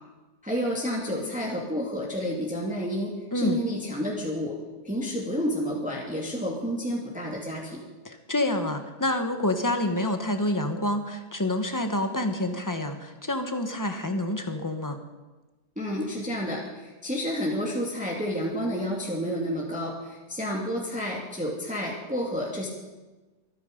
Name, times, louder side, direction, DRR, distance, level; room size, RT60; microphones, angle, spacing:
voice 1, 0.4-4.6 4.8-7.8 15.8-22.7, equal, 5° right, -2 dB, 2.1 m, -30 dB
voice 2, 8.0-15.0, left 1 dB, 15° left, 6 dB, 1.1 m, -28 dB
24.0 x 9.7 x 5.2 m, 1.2 s
omnidirectional pair, 1.8 m